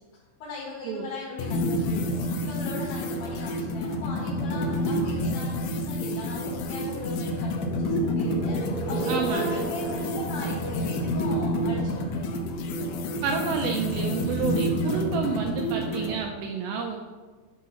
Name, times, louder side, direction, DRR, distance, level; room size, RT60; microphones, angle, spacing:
voice 1, 0.4-2.1 2.4-12.3, left 3 dB, 65° left, -6 dB, 3.6 m, -39 dB
sound 1, 1.4-16.2, equal, 85° left, 2.1 m, -29 dB
sound 2, 7.5-12.5, right 2 dB, 45° left, 2.7 m, -36 dB
voice 2, 9.1-9.7 13.2-17.0, right 6 dB, 80° right, 2 dB, 2.5 m, -29 dB
10.5 x 3.8 x 5.6 m, 1.3 s
omnidirectional pair, 5.3 m